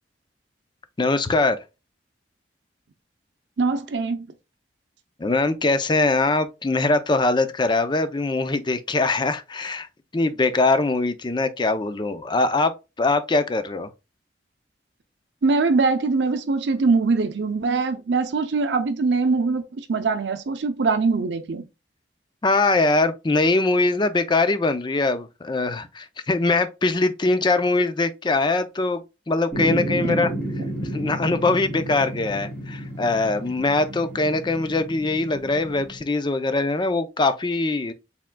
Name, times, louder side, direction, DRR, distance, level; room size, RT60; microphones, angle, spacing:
voice 1, 1.0-1.6 5.2-9.9 10.1-13.9 22.4-29.0 29.3-30.3 30.9-37.9, left 3 dB, 25° left, 0.5 m, -22 dB
voice 2, 3.6-4.3 15.4-21.7 30.0-30.2, right 4 dB, 75° right, 0.5 m, -22 dB
sound 1, 29.5-36.0, right 1 dB, 10° left, 1.9 m, -31 dB
4.6 x 3.6 x 2.2 m
head